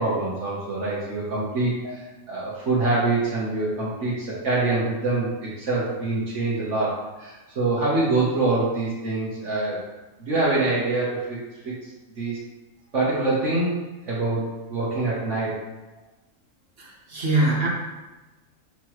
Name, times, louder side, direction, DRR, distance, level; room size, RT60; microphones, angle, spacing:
voice 1, 0.0-9.8 10.2-11.4 11.6-12.4 12.9-13.8 14.1-15.6, right 2 dB, 60° right, -7 dB, 1.6 m, -25 dB
voice 2, 16.8-17.7, right 2 dB, 45° right, -5 dB, 1.7 m, -23 dB
6.7 x 5.8 x 3.1 m, 1.1 s
omnidirectional pair, 1.4 m